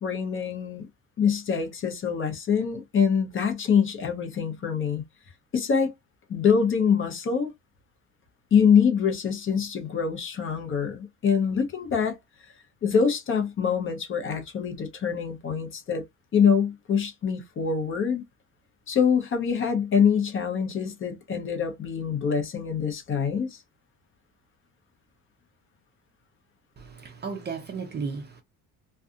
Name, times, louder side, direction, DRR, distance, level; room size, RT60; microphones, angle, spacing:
voice 1, 0.0-0.9 1.2-5.1 5.5-5.9 6.3-7.5 8.5-12.2 12.8-16.0 16.3-18.2 18.9-23.6, left 6 dB, 35° left, 0.8 m, -24 dB
voice 2, 26.8-28.4, right 5 dB, 30° right, 0.5 m, -34 dB
2.6 x 2.3 x 2.4 m
cardioid pair, 135°, 37 cm